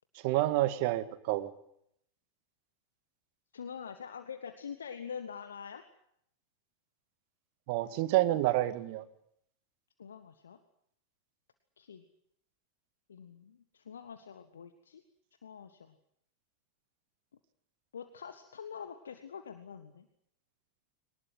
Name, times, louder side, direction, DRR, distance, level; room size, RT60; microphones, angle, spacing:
voice 1, 0.2-1.5 7.7-9.0, right 16 dB, 45° right, 14 dB, 1.8 m, -28 dB
voice 2, 3.5-5.8 10.0-10.6 11.8-12.0 13.1-15.0 15.4-15.9 17.9-20.1, left 7 dB, 70° left, 10 dB, 1.6 m, -45 dB
23.5 x 19.5 x 9.6 m, 0.73 s
figure-of-eight pair, 90°, 0 cm